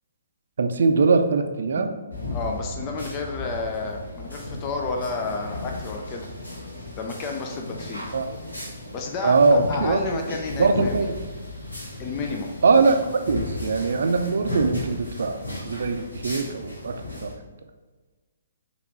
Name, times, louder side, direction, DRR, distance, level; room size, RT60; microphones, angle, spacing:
voice 1, 0.6-1.9 8.1-8.3 9.2-10.0 10.6-11.1 12.6-15.4 15.7-16.9 17.2-17.3, right 4 dB, 55° right, 6 dB, 0.6 m, -21 dB
sound 1, 2.1-17.3, left 2 dB, 80° left, 1.9 m, -35 dB
voice 2, 2.3-6.3 6.9-8.0 8.9-11.1 12.0-12.5, left 3 dB, 25° left, 2 dB, 0.6 m, -31 dB
5.7 x 3.9 x 4.5 m, 1.3 s
figure-of-eight pair, 125°, 0 cm